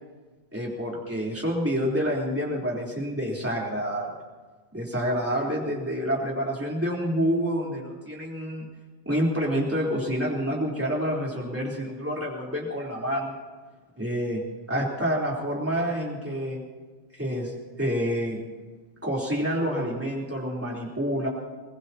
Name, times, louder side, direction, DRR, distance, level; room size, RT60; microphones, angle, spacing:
voice 1, 0.5-4.1 4.7-8.7 9.1-13.3 14.0-14.4 14.7-16.6 17.1-18.4 19.0-21.3, equal, 10° right, -4 dB, 3.6 m, -28 dB
23.5 x 21.5 x 2.9 m, 1.4 s
omnidirectional pair, 1.1 m